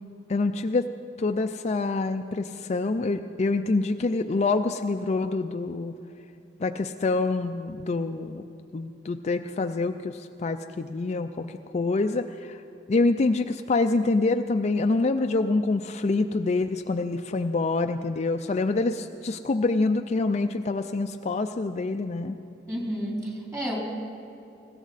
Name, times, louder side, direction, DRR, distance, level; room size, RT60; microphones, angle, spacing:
voice 1, 0.3-0.9 1.2-5.9 6.6-8.4 8.7-12.6 12.9-22.4, left 3 dB, 40° left, 7 dB, 0.4 m, -26 dB
voice 2, 22.7-23.8, equal, 15° right, -3 dB, 3.4 m, -31 dB
19.5 x 16.5 x 4.1 m, 2.8 s
head